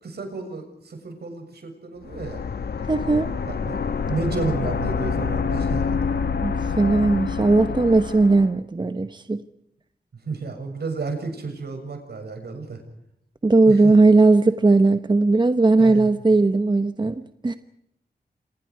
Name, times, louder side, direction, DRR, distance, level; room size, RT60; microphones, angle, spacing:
voice 1, 0.0-2.4 3.5-6.0 10.2-12.8 13.7-13.9 15.8-16.1, right 4 dB, 75° right, 5 dB, 7.2 m, -31 dB
sound 1, 2.0-8.5, left 5 dB, 75° left, 1.5 m, -27 dB
voice 2, 2.9-3.3 6.4-9.4 13.4-17.6, right 3 dB, 25° right, 9 dB, 1.1 m, -18 dB
29.0 x 27.5 x 4.8 m, 0.75 s
wide cardioid pair, 150°, 17 cm